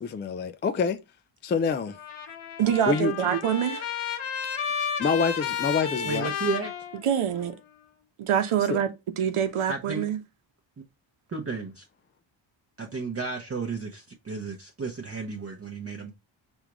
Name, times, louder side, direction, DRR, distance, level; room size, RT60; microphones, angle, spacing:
voice 1, 0.0-1.0 1.4-2.0 2.9-3.1 5.0-6.3 8.7-8.8, left 5 dB, 25° left, 0.3 m, -26 dB
Trumpet, 1.9-7.5, left 7 dB, 75° left, 1.3 m, -32 dB
voice 2, 2.6-3.9 7.0-7.6 8.2-8.9 9.2-10.2, right 9 dB, 80° right, 1.0 m, -25 dB
voice 3, 6.0-6.7 9.7-10.0 10.8-10.9 11.3-11.9 12.8-16.1, right 4 dB, 30° right, 0.8 m, -33 dB
4.9 x 3.6 x 3.0 m
wide cardioid pair, 140°, 50 cm